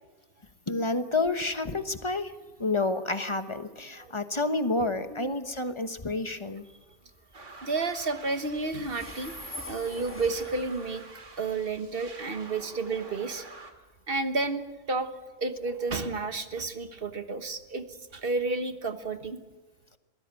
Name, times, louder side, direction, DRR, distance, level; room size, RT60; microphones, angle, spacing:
voice 1, 0.7-2.3 2.6-6.7, left 2 dB, 25° left, 10 dB, 1.1 m, -29 dB
Train, 4.6-19.3, left 1 dB, 10° left, 1.8 m, -50 dB
sound 1, 7.3-13.7, right 3 dB, 80° right, 2.6 m, -47 dB
voice 2, 7.6-11.0 11.4-13.4 14.1-15.1 15.4-19.4, right 3 dB, 50° right, 10 dB, 1.5 m, -31 dB
22.5 x 16.5 x 9.0 m, 1.3 s
omnidirectional pair, 1.2 m